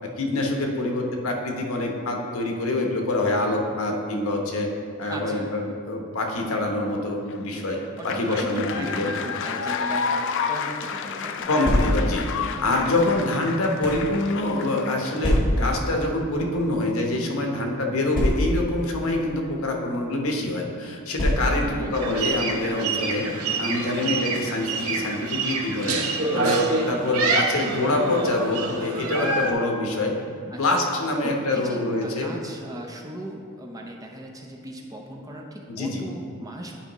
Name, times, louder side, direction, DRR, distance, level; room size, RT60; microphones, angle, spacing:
voice 1, 0.0-4.7 5.0-9.1 11.5-23.3 23.6-26.0 26.3-30.2 30.4-32.3 35.7-36.0, left 2 dB, 75° left, 1 dB, 0.9 m, -25 dB
voice 2, 5.1-5.6 8.0-11.5 21.5-22.0 30.5-30.7 31.2-36.7, right 1 dB, 15° right, 0 dB, 0.6 m, -37 dB
sound 1, 7.3-15.4, left 6 dB, 60° left, 0.3 m, -31 dB
sound 2, 11.4-12.3 13.1-14.1 15.2-15.8 16.7-16.9 17.1-17.2 18.1-18.8 19.7-19.9 21.1-21.8, left 1 dB, 25° left, 1.5 m, -24 dB
sound 3, 21.9-29.5, right 3 dB, 85° right, 0.7 m, -26 dB
10.5 x 4.6 x 3.0 m, 2.4 s
head